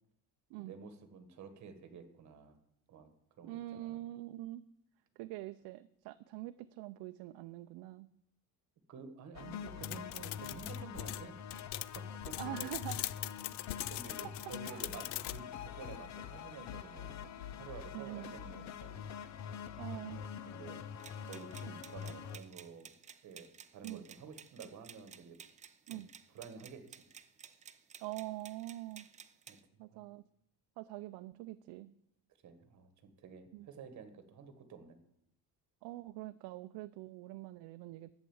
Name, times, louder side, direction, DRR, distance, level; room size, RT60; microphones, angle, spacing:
voice 1, 0.6-2.6 2.9-3.1 3.4-4.0 8.9-11.6 11.9-12.7 13.9-17.2 17.6-19.1 20.4-22.9 23.2-25.4 25.9-26.0 26.3-27.0 29.5-29.6 29.9-30.1 32.4-35.0, right 5 dB, 45° right, 8 dB, 1.6 m, -51 dB
voice 2, 3.4-4.6 5.2-8.1 12.4-13.0 14.2-14.9 17.9-18.3 19.8-20.2 23.8-24.0 25.9-26.1 28.0-29.1 29.8-30.2 30.8-31.9 33.5-33.7 35.8-38.2, right 16 dB, 75° right, 9 dB, 0.6 m, -44 dB
sound 1, 9.3-22.4, left 8 dB, 45° left, 0.7 m, -45 dB
sound 2, 9.8-15.4, left 17 dB, 75° left, 0.5 m, -41 dB
sound 3, 21.0-29.6, right 7 dB, 20° right, 0.4 m, -55 dB
11.5 x 8.2 x 7.2 m, 0.78 s
cardioid pair, 165°, 40 cm